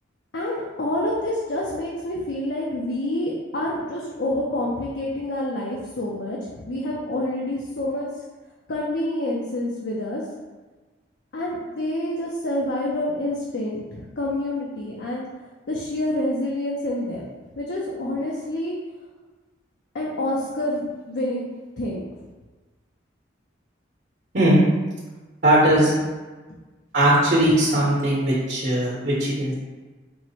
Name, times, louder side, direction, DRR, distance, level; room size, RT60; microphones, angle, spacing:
voice 1, 0.3-8.0 8.7-10.2 11.3-15.2 15.7-17.2 17.6-18.7 19.9-21.5 21.8-22.0, left 1 dB, 60° left, -3 dB, 0.5 m, -27 dB
voice 2, 25.4-26.0 26.9-29.5, right 1 dB, 55° right, -7 dB, 1.1 m, -19 dB
4.5 x 2.1 x 4.1 m, 1.3 s
head